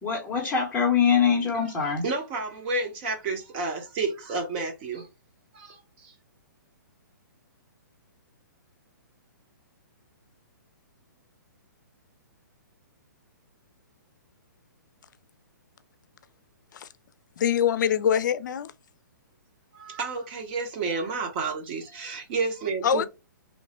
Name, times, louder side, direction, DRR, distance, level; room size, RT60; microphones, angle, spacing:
voice 1, 0.0-2.0, left 6 dB, 10° left, 0.8 m, -23 dB
voice 2, 2.0-5.1 5.5-6.1 19.7-23.0, right 3 dB, 35° right, 1.0 m, -31 dB
voice 3, 17.4-18.7 22.8-23.0, left 8 dB, 65° left, 0.5 m, -24 dB
3.1 x 2.1 x 4.2 m
hypercardioid pair, 150°, 11 cm